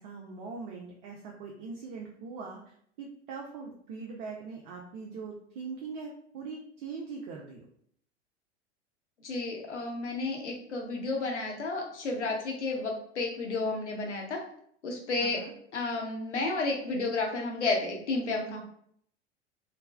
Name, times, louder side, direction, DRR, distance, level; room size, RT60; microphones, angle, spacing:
voice 1, 0.0-7.7 15.2-15.5, right 4 dB, 45° right, -1 dB, 0.5 m, -41 dB
voice 2, 9.2-14.4 14.8-15.4 15.7-18.6, left 3 dB, 80° left, 1 dB, 0.7 m, -32 dB
3.2 x 2.0 x 2.2 m, 0.65 s
figure-of-eight pair, 85°, 34 cm